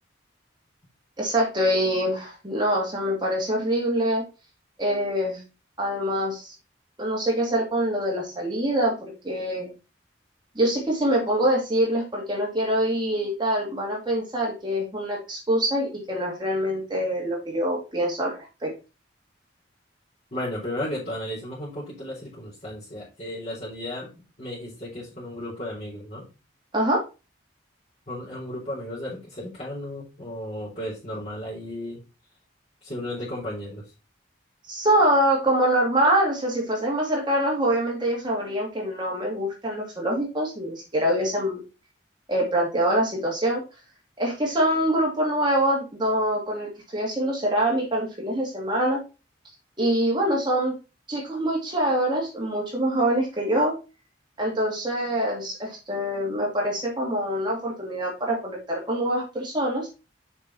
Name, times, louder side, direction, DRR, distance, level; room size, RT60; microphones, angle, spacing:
voice 1, 1.2-4.2 4.8-5.4 5.8-6.5 7.0-8.9 9.2-9.7 10.6-18.3 18.6-18.7 26.7-27.0 34.7-41.6 42.3-43.6 44.2-49.0 49.8-50.8 51.1-53.7 54.4-59.9, right 1 dB, 25° right, -2 dB, 2.3 m, -24 dB
voice 2, 20.3-26.3 28.1-32.0 32.8-33.9, left 1 dB, 40° left, -10 dB, 3.8 m, -34 dB
6.9 x 5.5 x 4.1 m, 0.29 s
head